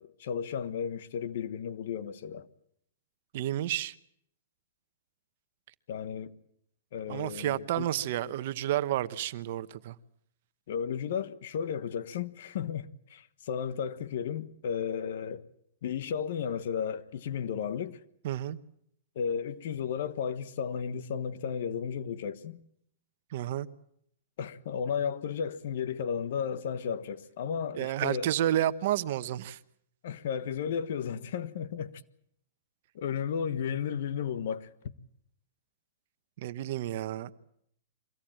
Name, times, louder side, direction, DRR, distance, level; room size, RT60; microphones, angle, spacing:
voice 1, 0.0-2.5 5.9-6.3 6.9-7.9 10.7-15.4 15.8-18.0 19.1-22.6 24.4-28.3 30.0-32.0 32.9-34.7, left 7 dB, 65° left, 1.3 m, -34 dB
voice 2, 3.3-3.9 7.1-9.9 18.2-18.6 23.3-23.7 27.7-29.6 36.4-37.3, right 12 dB, 55° right, 1.0 m, -30 dB
24.0 x 17.0 x 8.9 m
hypercardioid pair, 140°, 0 cm